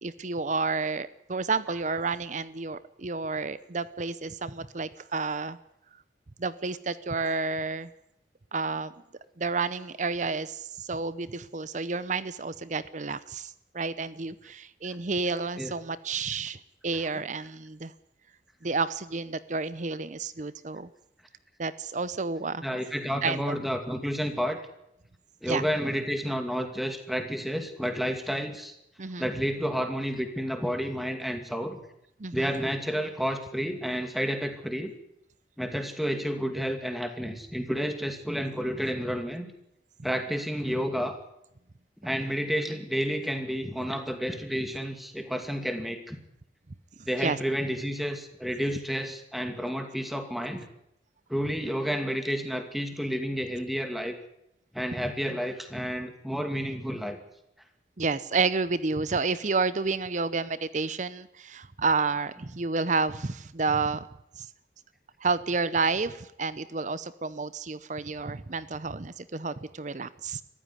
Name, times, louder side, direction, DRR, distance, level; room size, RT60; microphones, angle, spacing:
voice 1, 0.0-5.6 6.4-7.9 8.5-8.9 9.4-16.6 16.8-17.9 18.6-20.9 21.6-22.6 23.2-23.6 25.5-25.6 29.0-29.3 32.2-32.5 47.2-47.4 58.0-64.1 64.4-64.5 65.2-70.4, right 4 dB, 45° right, 16 dB, 0.7 m, -30 dB
voice 2, 22.6-24.6 25.4-28.7 29.2-31.8 32.3-34.9 35.6-39.5 40.0-41.2 42.0-46.2 47.1-50.7 51.3-54.1 54.7-57.2, equal, ahead, 6 dB, 2.5 m, -30 dB
22.5 x 15.0 x 9.9 m, 0.80 s
head